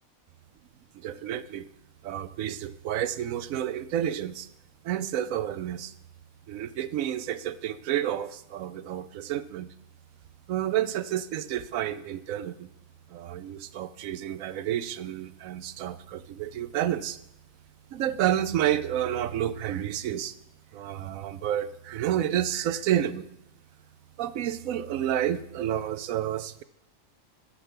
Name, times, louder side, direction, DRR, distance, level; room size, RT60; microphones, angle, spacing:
voice 1, 0.9-1.7 2.0-4.5 4.8-5.9 6.5-9.7 10.5-12.7 13.1-17.2 17.9-20.3 20.7-23.3 24.2-26.6, right 11 dB, 75° right, 14 dB, 0.9 m, -30 dB
8.7 x 6.9 x 7.4 m, 0.80 s
omnidirectional pair, 1.5 m